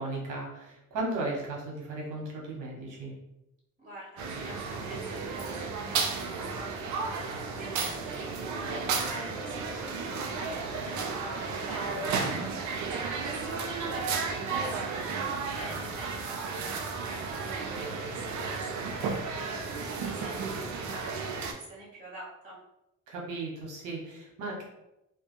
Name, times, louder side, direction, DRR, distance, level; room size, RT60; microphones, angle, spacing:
voice 1, 0.0-3.1 12.2-12.5 23.1-24.6, right 2 dB, 85° right, -2 dB, 0.9 m, -36 dB
voice 2, 3.8-6.8 7.1-22.6, right 1 dB, 25° right, -5 dB, 1.1 m, -46 dB
sound 1, 4.2-21.5, right 4 dB, 70° right, 0.5 m, -33 dB
2.2 x 2.2 x 2.9 m, 0.89 s
cardioid pair, 90°, 30 cm